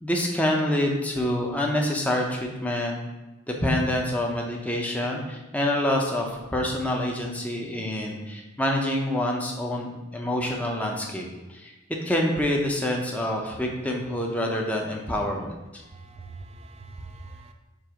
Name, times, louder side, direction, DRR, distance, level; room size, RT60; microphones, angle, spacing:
voice 1, 0.0-3.0 3.5-11.7 12.0-15.8, left 1 dB, 5° left, -1 dB, 0.7 m, -27 dB
voice 2, 16.0-17.5, right 3 dB, 30° right, 5 dB, 0.4 m, -43 dB
7.6 x 2.6 x 5.0 m, 1.1 s
head